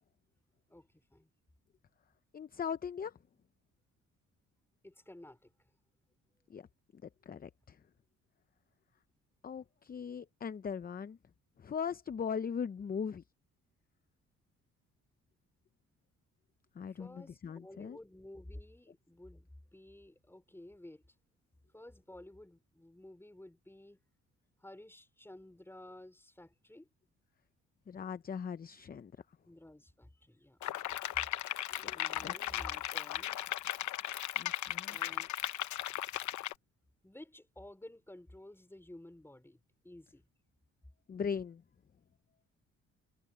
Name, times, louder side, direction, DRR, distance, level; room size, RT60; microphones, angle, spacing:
voice 1, 0.7-1.3 4.8-5.5 17.0-21.0 21.7-24.0 24.6-26.9 29.5-31.0 31.9-33.4 34.8-35.3 37.0-40.3, left 1 dB, 10° left, 5.3 m, -53 dB
voice 2, 2.3-3.1 6.5-6.7 6.9-7.8 9.4-11.2 11.6-13.2 16.8-18.0 27.9-29.1 31.8-32.3 34.3-35.0 41.1-41.6, left 7 dB, 30° left, 0.6 m, -39 dB
sound 1, 30.6-36.5, left 13 dB, 70° left, 0.9 m, -37 dB
cardioid pair, 90°, 30 cm